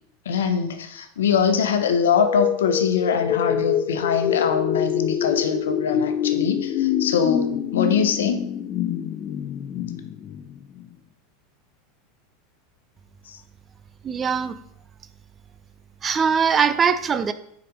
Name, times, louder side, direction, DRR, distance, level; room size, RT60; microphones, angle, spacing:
voice 1, 0.2-8.4 13.3-13.4, left 6 dB, 85° left, 7 dB, 0.9 m, -23 dB
sound 1, 1.9-10.9, left 10 dB, 45° left, 0.6 m, -26 dB
voice 2, 14.0-14.6 16.0-17.3, right 6 dB, 30° right, 12 dB, 0.6 m, -21 dB
6.7 x 5.2 x 5.1 m, 0.70 s
hypercardioid pair, 100°, 0 cm